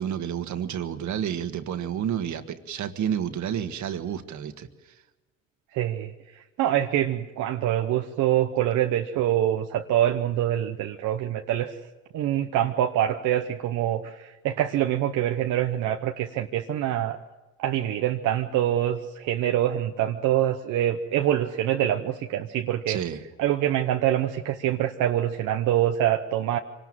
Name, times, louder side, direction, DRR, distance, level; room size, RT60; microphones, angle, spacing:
voice 1, 0.0-4.9 22.9-23.2, right 9 dB, 70° right, 8 dB, 1.7 m, -30 dB
voice 2, 5.7-6.1 6.6-11.7 12.1-17.2 17.6-23.0 23.4-26.6, right 11 dB, 90° right, 4 dB, 1.0 m, -25 dB
25.0 x 19.0 x 7.5 m, 1.1 s
cardioid pair, 90°, 30 cm